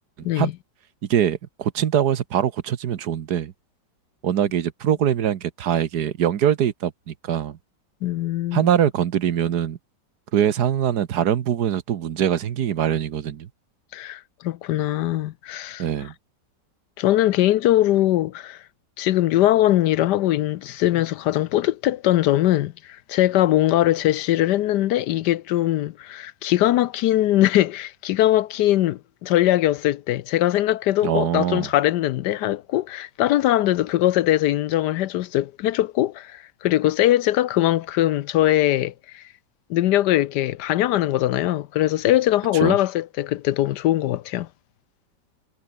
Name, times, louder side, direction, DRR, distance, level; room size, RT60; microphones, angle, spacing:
voice 1, 1.1-3.5 4.2-7.6 8.5-9.8 10.3-13.5 15.8-16.1 31.0-31.7 42.6-42.8, right 9 dB, 65° right, 1.5 m, -23 dB
voice 2, 8.0-8.7 13.9-15.8 17.0-18.6 19.0-39.2 39.7-44.5, left 14 dB, 75° left, 1.2 m, -21 dB
omnidirectional pair, 1.9 m